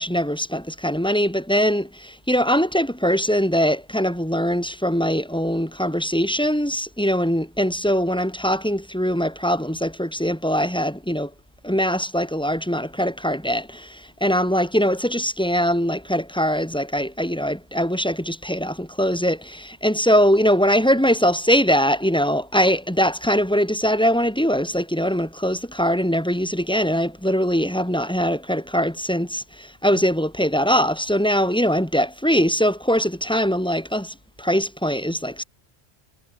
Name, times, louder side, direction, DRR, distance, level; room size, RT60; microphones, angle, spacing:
voice 1, 0.0-11.3 11.6-35.4, equal, 5° left, 2.1 m, -22 dB
omnidirectional pair, 1.1 m